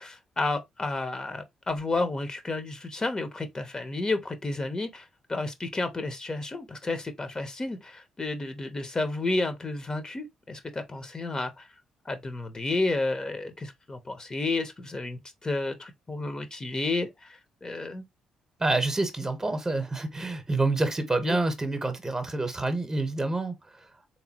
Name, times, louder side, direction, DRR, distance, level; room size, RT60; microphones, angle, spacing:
voice 1, 0.0-11.7 12.0-18.0 21.2-21.4, left 2 dB, 30° left, 0.8 m, -31 dB
voice 2, 18.6-23.5, right 2 dB, 25° right, 1.0 m, -27 dB
3.6 x 3.0 x 2.9 m
hypercardioid pair, 45°, 2 cm